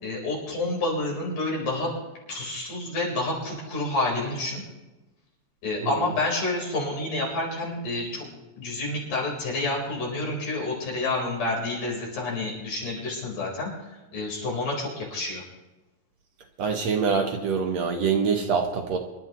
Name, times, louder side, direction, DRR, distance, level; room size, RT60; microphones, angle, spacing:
voice 1, 0.0-1.9 2.3-4.6 5.6-8.3 8.6-13.7 14.1-15.4, left 2 dB, 75° left, -3 dB, 5.5 m, -29 dB
voice 2, 16.6-19.0, right 5 dB, 65° right, 3 dB, 1.9 m, -25 dB
26.0 x 12.0 x 3.0 m, 1.1 s
omnidirectional pair, 3.8 m